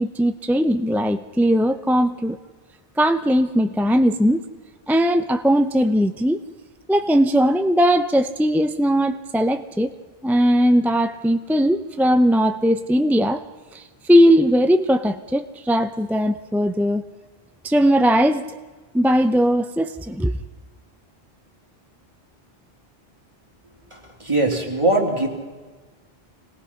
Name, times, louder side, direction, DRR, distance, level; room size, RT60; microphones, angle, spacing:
voice 1, 0.0-2.4 3.0-4.4 4.9-6.4 6.9-9.9 10.2-13.4 13.7-17.0 17.6-18.4 18.9-20.3, equal, 5° right, 0.3 m, -19 dB
voice 2, 23.9-25.3, right 2 dB, 30° right, 2.9 m, -21 dB
26.5 x 18.5 x 5.7 m
omnidirectional pair, 1.0 m